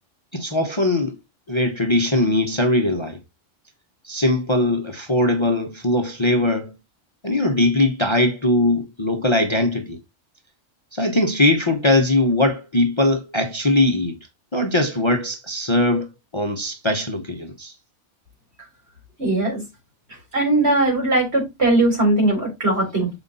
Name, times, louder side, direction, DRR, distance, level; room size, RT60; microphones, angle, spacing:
voice 1, 0.3-1.1 1.5-3.2 4.0-6.7 7.2-10.0 10.9-14.1 14.5-17.7, left 1 dB, 25° left, 0.9 m, -20 dB
voice 2, 19.2-19.6 20.3-23.1, right 2 dB, 55° right, 4.6 m, -19 dB
6.9 x 4.9 x 4.0 m
omnidirectional pair, 1.3 m